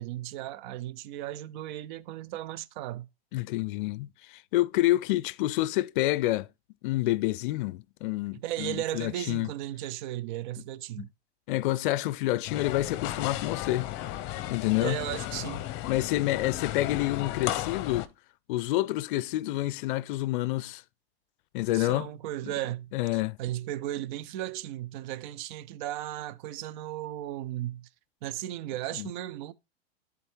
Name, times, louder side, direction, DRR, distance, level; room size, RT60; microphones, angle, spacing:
voice 1, 0.0-3.1 8.4-11.1 14.8-15.7 21.7-22.9 23.4-27.9 28.2-29.5, right 13 dB, 50° right, 0.8 m, -35 dB
voice 2, 3.3-6.5 6.8-9.5 11.5-13.9 14.5-15.0 15.9-18.1 18.5-20.8 21.5-22.1 22.9-23.4 28.9-29.1, left 17 dB, 55° left, 0.5 m, -28 dB
sound 1, 12.5-18.1, left 14 dB, 35° left, 0.9 m, -35 dB
11.5 x 4.1 x 4.5 m
hypercardioid pair, 130°, 31 cm